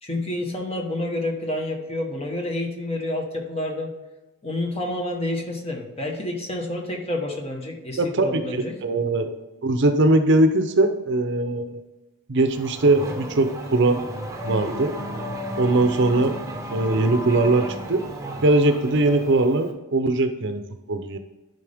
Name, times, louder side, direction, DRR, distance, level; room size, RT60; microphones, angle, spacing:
voice 1, 0.0-3.9 4.4-8.8, left 1 dB, 25° left, 1 dB, 1.3 m, -29 dB
voice 2, 8.0-9.3 9.6-11.8 12.3-14.0 14.4-15.0 15.6-16.4 16.7-18.0 18.4-20.6 20.9-21.2, right 2 dB, 55° right, 8 dB, 0.7 m, -20 dB
Race car auto racing / Accelerating revving vroom, 12.5-19.7, right 1 dB, 15° right, 0.9 m, -34 dB
11.0 x 5.5 x 3.5 m, 1.1 s
head